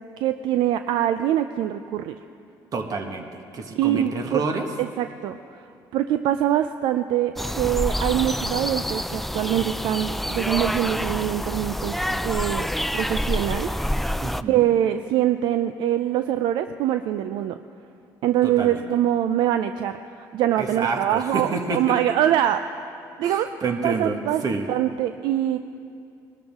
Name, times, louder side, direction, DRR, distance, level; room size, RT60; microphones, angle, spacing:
voice 1, 0.2-2.1 3.8-4.4 4.8-5.7 5.9-12.7 12.9-13.7 14.5-17.6 18.2-20.0 20.3-22.9 23.2-23.6 23.8-24.4 24.7-25.6, right 11 dB, 75° right, 10 dB, 0.4 m, -24 dB
voice 2, 2.7-4.7 14.2-14.7 18.4-18.8 20.6-22.0 23.2-24.6, right 4 dB, 50° right, 4 dB, 1.6 m, -28 dB
sound 1, 7.4-14.4, equal, ahead, 0.3 m, -27 dB
20.5 x 12.5 x 3.6 m, 2.5 s
supercardioid pair, 85°, 8 cm